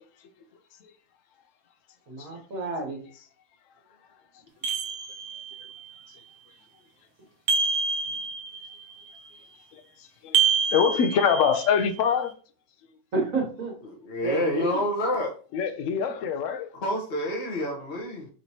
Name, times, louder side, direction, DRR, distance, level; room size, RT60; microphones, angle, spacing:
voice 1, 2.1-3.0 13.1-13.7 14.2-14.8, right 3 dB, 70° right, 1.7 m, -30 dB
sound 1, 4.6-5.6 7.5-8.8 10.3-11.9, right 5 dB, 90° right, 1.1 m, -27 dB
voice 2, 10.7-12.3 15.5-16.7, left 7 dB, 70° left, 0.9 m, -24 dB
voice 3, 13.8-15.3 16.7-18.3, left 1 dB, 45° left, 1.2 m, -28 dB
5.8 x 3.0 x 2.8 m
omnidirectional pair, 1.5 m